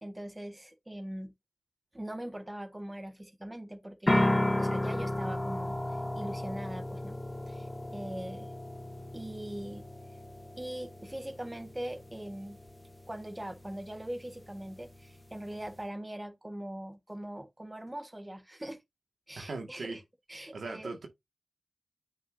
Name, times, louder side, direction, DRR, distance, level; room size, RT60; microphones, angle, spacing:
voice 1, 0.0-1.3 1.9-7.2 7.5-8.5 9.1-9.9 10.6-12.6 13.1-18.8 19.3-20.0 20.3-20.9, right 1 dB, 20° right, 1.3 m, -41 dB
sound 1, 4.1-15.8, left 1 dB, 20° left, 0.9 m, -35 dB
voice 2, 19.3-20.0 20.5-21.1, right 3 dB, 90° right, 1.7 m, -39 dB
9.1 x 5.8 x 2.6 m
wide cardioid pair, 60°, 0 cm